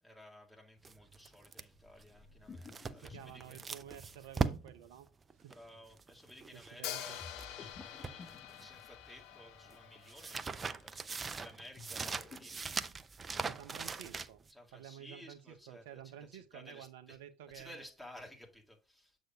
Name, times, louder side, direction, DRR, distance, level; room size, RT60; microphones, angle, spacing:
voice 1, 0.0-3.7 5.5-13.0 14.5-17.2 17.5-19.2, left 1 dB, 5° left, 2.1 m, -56 dB
sound 1, 0.8-7.5 7.8-9.0 9.2-14.5, right 4 dB, 25° right, 0.5 m, -40 dB
sound 2, 1.7-4.6 7.2-9.2 11.6-13.0, left 4 dB, 35° left, 0.9 m, -54 dB
voice 2, 2.9-5.1 5.4-5.5 6.5-7.2 13.4-14.4 14.7-17.8, right 11 dB, 70° right, 0.6 m, -51 dB
Hi-hat, 6.8-10.8, left 11 dB, 60° left, 0.7 m, -46 dB
7.7 x 6.4 x 2.4 m
figure-of-eight pair, 65°, 0 cm